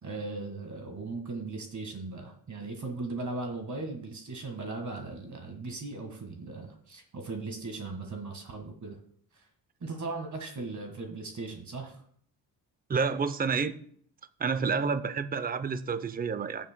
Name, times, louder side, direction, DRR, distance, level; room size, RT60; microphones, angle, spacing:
voice 1, 0.0-9.0 9.3-9.5 9.8-12.0, right 3 dB, 40° right, 4 dB, 1.8 m, -38 dB
voice 2, 12.9-13.8 14.4-16.7, right 5 dB, 20° right, 13 dB, 0.6 m, -29 dB
14.5 x 7.5 x 2.2 m, 0.62 s
cardioid pair, 85°, 46 cm